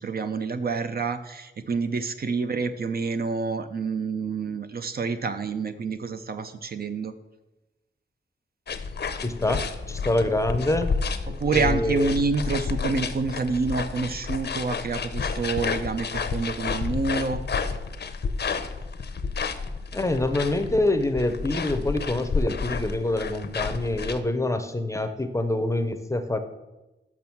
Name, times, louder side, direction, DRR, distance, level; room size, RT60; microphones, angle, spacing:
voice 1, 0.0-7.1 11.3-17.4, right 4 dB, 50° right, 9 dB, 0.5 m, -28 dB
sound 1, 8.7-24.2, left 5 dB, 55° left, 0.6 m, -30 dB
voice 2, 9.2-9.6 9.9-10.9 11.5-12.1 19.9-26.4, left 2 dB, 15° left, 8 dB, 0.6 m, -25 dB
6.1 x 6.0 x 7.1 m, 1.0 s
wide cardioid pair, 160°, 20 cm